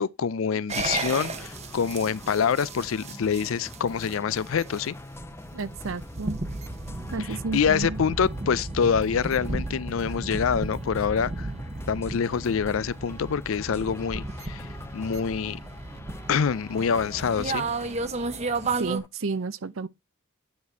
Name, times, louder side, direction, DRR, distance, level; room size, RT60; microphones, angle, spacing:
voice 1, 0.0-5.0 7.2-11.5 11.9-14.7 14.9-15.6 16.3-17.7, left 6 dB, 80° left, 0.4 m, -26 dB
sound 1, 0.7-19.0, right 3 dB, 30° right, 0.8 m, -34 dB
sound 2, 0.9-19.1, left 2 dB, 10° left, 0.4 m, -45 dB
voice 2, 5.5-6.4 7.1-8.0 18.8-19.9, right 4 dB, 80° right, 0.6 m, -31 dB
9.5 x 4.2 x 4.6 m
head